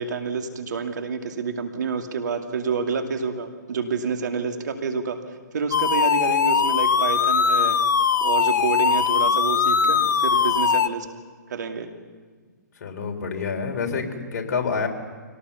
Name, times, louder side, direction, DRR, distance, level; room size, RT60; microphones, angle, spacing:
voice 1, 0.0-5.2 5.5-7.8 8.2-11.1 11.5-11.9, right 5 dB, 70° right, 5 dB, 2.4 m, -28 dB
sound 1, 5.7-10.9, left 6 dB, 75° left, 0.9 m, -20 dB
voice 2, 12.8-14.9, left 5 dB, 55° left, 3 dB, 3.7 m, -27 dB
25.0 x 18.0 x 7.0 m, 1.5 s
hypercardioid pair, 130°, 10 cm